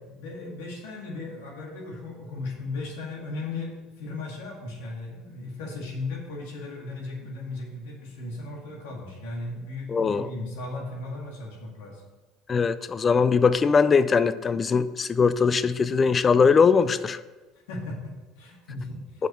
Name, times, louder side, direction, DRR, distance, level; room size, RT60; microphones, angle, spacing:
voice 1, 0.1-12.0 17.7-19.3, left 2 dB, 85° left, -1 dB, 2.0 m, -36 dB
voice 2, 9.9-10.3 12.5-17.2 19.2-19.3, left 5 dB, 30° left, 14 dB, 0.4 m, -21 dB
5.9 x 5.2 x 6.7 m, 1.2 s
supercardioid pair, 95°, 0 cm